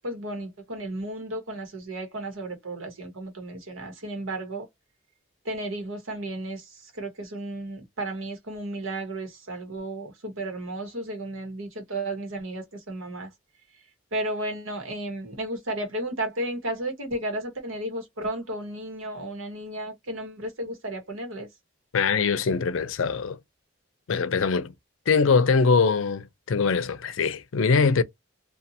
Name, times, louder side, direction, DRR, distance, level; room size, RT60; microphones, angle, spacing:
voice 1, 0.0-4.7 5.4-13.3 14.1-21.5, right 1 dB, 90° right, 1.2 m, -33 dB
voice 2, 21.9-23.4 24.1-24.7 25.1-28.0, left 5 dB, 85° left, 0.5 m, -22 dB
2.6 x 2.4 x 2.7 m
head